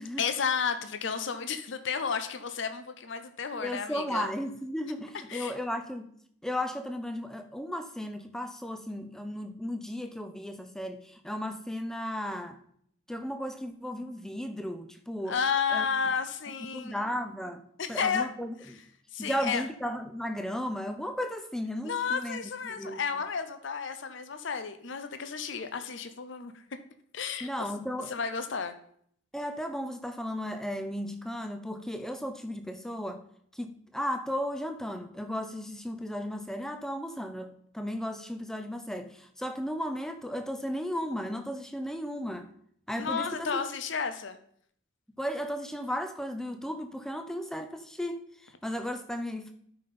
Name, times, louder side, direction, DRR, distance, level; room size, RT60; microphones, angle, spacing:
voice 1, 0.2-4.3 5.3-5.5 15.3-16.9 17.8-18.3 19.1-19.6 21.8-26.5 27.1-27.5 28.1-28.8 42.9-44.4, left 6 dB, 60° left, 0.6 m, -32 dB
voice 2, 3.6-6.1 6.4-12.6 13.1-15.4 15.7-15.9 16.7-18.8 19.2-22.4 22.6-23.0 27.4-28.1 29.3-33.2 33.5-42.5 42.9-43.6 45.2-49.5, equal, ahead, 0.6 m, -35 dB
12.5 x 5.5 x 4.3 m
head